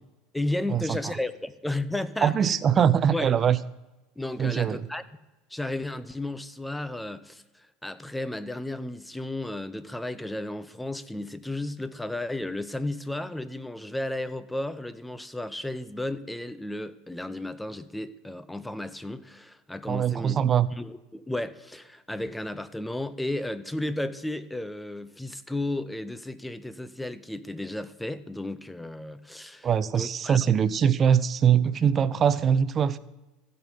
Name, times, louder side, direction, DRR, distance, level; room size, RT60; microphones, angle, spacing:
voice 1, 0.3-2.6 3.1-3.3 4.2-5.0 5.5-20.5 20.8-29.7 29.9-30.4, left 1 dB, 5° left, 0.6 m, -33 dB
voice 2, 2.2-3.6 4.4-4.9 19.9-20.7 29.6-33.0, right 8 dB, 35° right, 0.5 m, -22 dB
15.0 x 5.5 x 5.4 m
hypercardioid pair, 80°, 0 cm